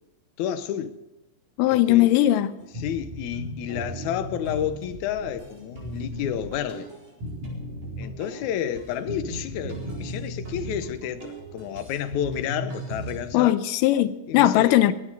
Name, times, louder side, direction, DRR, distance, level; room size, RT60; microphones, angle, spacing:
voice 1, 0.4-1.0 1.7-2.4 2.7-6.9 8.0-13.6 14.3-14.9, left 9 dB, 70° left, 2.2 m, -30 dB
voice 2, 1.6-2.5 13.3-14.9, left 14 dB, 90° left, 2.3 m, -19 dB
sound 1, 2.7-13.2, equal, 65° right, 5.9 m, -36 dB
23.5 x 9.6 x 4.8 m
omnidirectional pair, 3.7 m